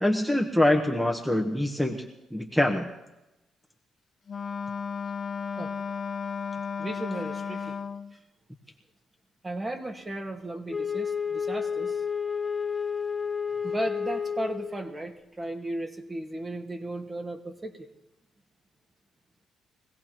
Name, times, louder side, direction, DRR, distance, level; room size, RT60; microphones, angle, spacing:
voice 1, 0.0-2.0 2.3-2.9, left 1 dB, ahead, 3 dB, 1.1 m, -24 dB
Wind instrument woodwind instrument, 4.3-8.1, left 6 dB, 40° left, 0.5 m, -34 dB
voice 2, 6.8-7.8 9.4-12.0 13.6-17.9, right 1 dB, 25° right, 4 dB, 1.7 m, -35 dB
Wind instrument woodwind instrument 2, 10.7-14.9, left 6 dB, 25° left, 0.9 m, -31 dB
23.0 x 16.5 x 3.0 m, 0.98 s
cardioid pair, 90°, 0 cm